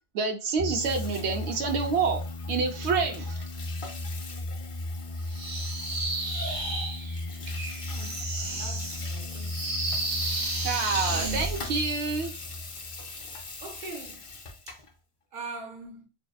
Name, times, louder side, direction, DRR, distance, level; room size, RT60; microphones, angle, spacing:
voice 1, 0.1-2.2 2.5-3.4 10.6-12.3, right 4 dB, 85° right, 0.9 m, -28 dB
Water tap faucet / Sink (filling or washing), 0.6-14.9, left 3 dB, 55° left, 0.3 m, -43 dB
sound 1, 0.6-13.8, left 2 dB, 5° right, 0.7 m, -36 dB
sound 2, 5.3-11.6, right 2 dB, 35° right, 0.3 m, -33 dB
voice 2, 7.9-9.6 13.6-14.3 14.7-14.8 15.3-16.1, right 3 dB, 55° right, 0.8 m, -42 dB
2.7 x 2.0 x 2.2 m
omnidirectional pair, 1.1 m